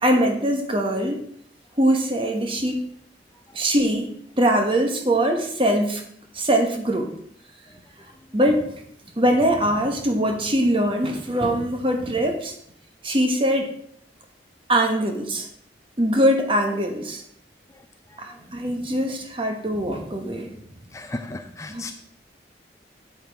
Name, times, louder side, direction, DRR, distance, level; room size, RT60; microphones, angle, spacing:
voice 1, 0.0-1.2 1.8-2.8 3.5-6.0 6.3-7.1 8.3-8.7 9.2-12.5 13.0-13.7 14.7-15.5 16.0-17.2 18.2-20.5 21.7-21.8, right 1 dB, 30° right, 4 dB, 1.1 m, -22 dB
voice 2, 17.7-18.5 20.9-21.9, left 2 dB, 20° left, 6 dB, 0.4 m, -38 dB
9.0 x 7.8 x 3.5 m, 0.67 s
head